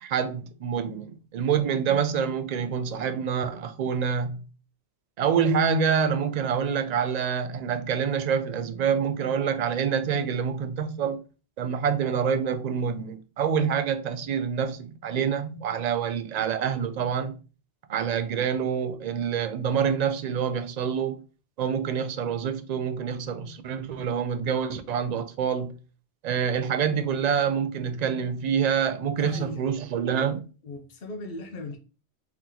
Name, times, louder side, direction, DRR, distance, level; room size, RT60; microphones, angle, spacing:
voice 1, 0.0-4.4 5.2-11.2 11.6-17.4 17.9-21.2 21.6-25.8 26.2-30.4, right 7 dB, 55° right, 0.5 m, -26 dB
voice 2, 29.2-29.7 30.6-31.8, left 2 dB, 65° left, 1.0 m, -38 dB
3.6 x 2.9 x 3.7 m
omnidirectional pair, 1.1 m